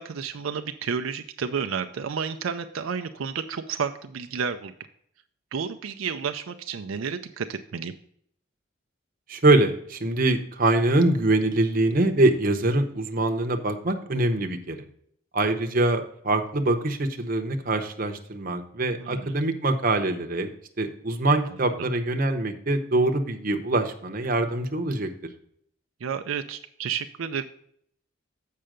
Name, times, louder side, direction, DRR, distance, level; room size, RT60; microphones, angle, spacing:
voice 1, 0.0-4.7 5.5-7.9 19.0-19.4 21.5-21.9 26.0-27.4, right 6 dB, 80° right, 7 dB, 0.5 m, -31 dB
voice 2, 9.3-14.8 15.3-20.5 20.8-25.1, right 2 dB, 45° right, 5 dB, 0.8 m, -24 dB
7.6 x 5.6 x 5.0 m, 0.66 s
head